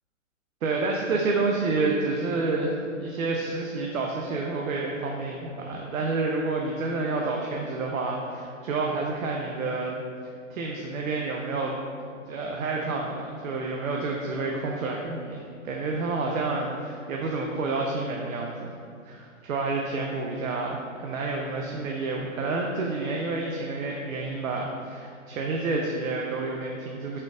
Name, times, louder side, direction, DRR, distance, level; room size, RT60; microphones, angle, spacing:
voice 1, 0.6-9.9 10.5-11.8 12.3-18.7 19.0-27.2, right 3 dB, 90° right, 0 dB, 0.6 m, -29 dB
4.3 x 2.4 x 3.7 m, 2.3 s
hypercardioid pair, 165°, 39 cm